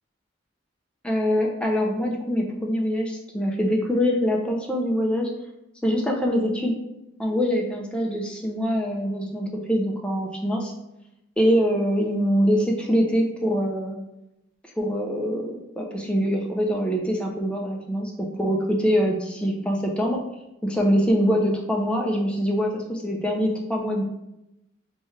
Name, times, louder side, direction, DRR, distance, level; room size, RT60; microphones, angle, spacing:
voice 1, 1.0-5.3 5.8-6.8 7.2-10.7 11.4-14.0 14.8-20.2 20.6-24.0, equal, 5° left, 0 dB, 0.4 m, -24 dB
3.1 x 2.3 x 4.3 m, 0.90 s
head